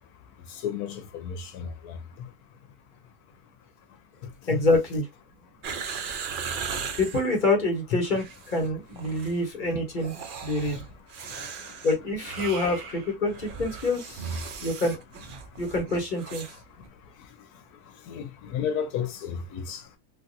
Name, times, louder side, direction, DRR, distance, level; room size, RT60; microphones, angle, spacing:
voice 1, 0.6-2.0 4.5-4.6 18.1-19.8, left 8 dB, 80° left, 1.1 m, -32 dB
voice 2, 4.5-5.1 7.0-10.1 10.4-10.8 11.8-15.0 15.6-16.4, left 2 dB, 35° left, 1.1 m, -26 dB
sound 1, 5.6-7.3 8.0-8.7 9.0-9.4 10.0-16.6 16.8-16.9, right 5 dB, 80° right, 0.4 m, -37 dB
3.4 x 2.5 x 2.6 m
omnidirectional pair, 1.6 m